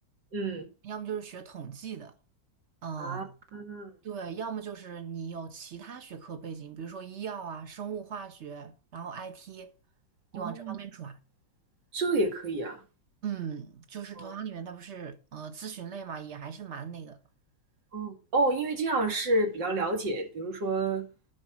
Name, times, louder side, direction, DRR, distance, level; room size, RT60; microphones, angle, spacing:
voice 1, 0.3-0.7 3.0-3.3 3.5-3.9 10.3-10.8 11.9-12.8 14.2-14.3 17.9-21.1, right 2 dB, 65° right, 2.9 m, -29 dB
voice 2, 0.8-2.1 2.8-3.4 4.0-9.7 10.3-11.2 13.2-17.2, right 7 dB, 40° right, 1.4 m, -39 dB
10.5 x 6.2 x 6.1 m
omnidirectional pair, 2.1 m